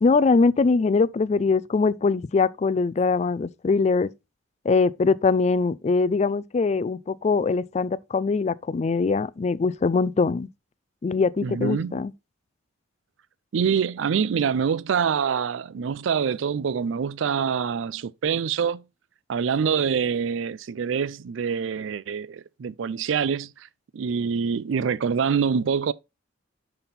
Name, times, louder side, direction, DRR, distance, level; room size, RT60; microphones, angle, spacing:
voice 1, 0.0-4.1 4.6-10.5 11.0-12.1, left 4 dB, 35° left, 0.3 m, -22 dB
voice 2, 11.4-12.0 13.5-18.8 19.3-23.5 23.9-25.9, right 6 dB, 75° right, 0.4 m, -25 dB
5.7 x 5.4 x 4.2 m
head